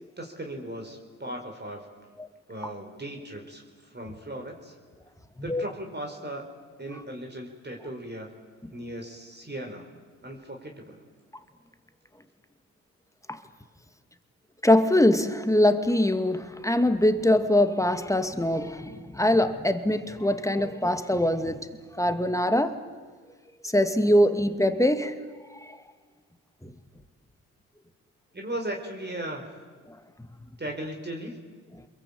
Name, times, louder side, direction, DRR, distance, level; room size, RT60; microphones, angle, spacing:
voice 1, 0.2-1.9 2.5-4.7 5.4-6.5 6.8-8.3 8.7-9.9 10.2-11.0 28.3-29.4 30.6-31.4, right 1 dB, 25° right, 2 dB, 4.7 m, -37 dB
voice 2, 14.6-21.7 22.0-22.8 23.7-25.2, left 1 dB, 10° left, 9 dB, 2.3 m, -23 dB
28.0 x 22.0 x 8.7 m, 1.5 s
hypercardioid pair, 45°, 41 cm